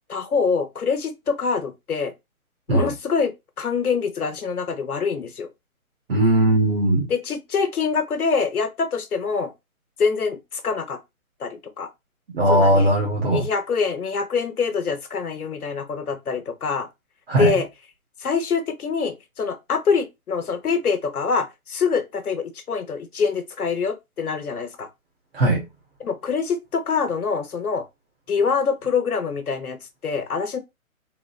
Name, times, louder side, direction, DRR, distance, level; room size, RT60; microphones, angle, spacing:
voice 1, 0.1-2.1 2.7-5.5 7.1-9.5 10.0-11.0 11.4-11.9 12.5-12.9 13.3-16.9 17.4-17.7 18.2-24.9 26.0-27.8 28.3-30.6, left 5 dB, 85° left, 1.1 m, -25 dB
voice 2, 6.1-7.1 12.3-13.5 17.3-17.5 25.3-25.6, right 1 dB, 40° right, 1.5 m, -18 dB
3.7 x 3.1 x 2.4 m
hypercardioid pair, 160°, 43 cm